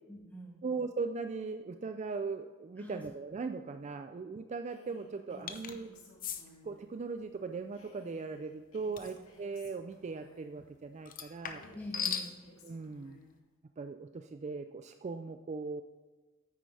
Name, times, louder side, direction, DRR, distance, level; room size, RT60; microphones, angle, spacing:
voice 1, 0.1-0.7 2.8-3.0 5.3-6.0 11.7-12.4, equal, 10° left, -1 dB, 1.7 m, -47 dB
voice 2, 0.6-5.9 6.6-11.6 12.6-13.2 13.8-15.8, right 4 dB, 35° right, 8 dB, 0.4 m, -39 dB
Female speech woman speaking, 4.6-6.8 7.7-10.6 11.4-13.3, left 2 dB, 75° left, 2.1 m, -58 dB
sound 1, 5.5-5.8 6.2-6.4 9.0-9.2 11.1-12.3, left 7 dB, 40° left, 0.7 m, -37 dB
9.3 x 9.0 x 3.3 m, 1.2 s
head